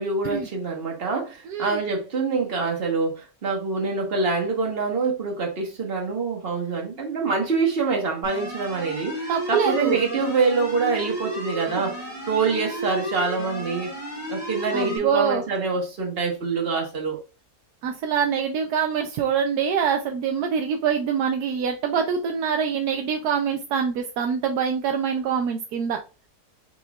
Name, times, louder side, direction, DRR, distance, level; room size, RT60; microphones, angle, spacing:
voice 1, 0.0-13.9 14.3-17.2, right 4 dB, 40° right, 1.4 m, -25 dB
voice 2, 1.5-1.8 9.3-10.0 11.6-11.8 14.7-15.4 17.8-26.0, right 7 dB, 80° right, 1.1 m, -25 dB
sound 1, 8.2-15.0, equal, 15° right, 1.9 m, -33 dB
4.7 x 4.3 x 2.3 m
omnidirectional pair, 1.7 m